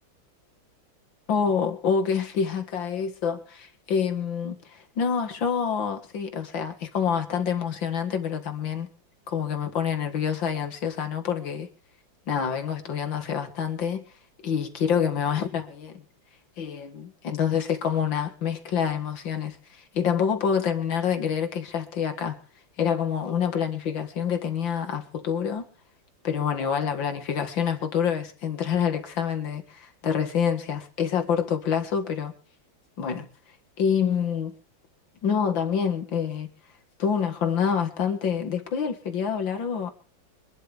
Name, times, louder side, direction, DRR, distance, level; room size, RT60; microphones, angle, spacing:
voice 1, 1.3-8.9 9.3-11.7 12.3-14.1 14.4-16.0 16.6-22.4 22.8-25.7 26.2-32.3 33.0-33.3 33.8-34.5 35.2-36.5 37.0-39.9, left 7 dB, 75° left, 2.5 m, -27 dB
24.5 x 11.5 x 3.5 m
omnidirectional pair, 2.1 m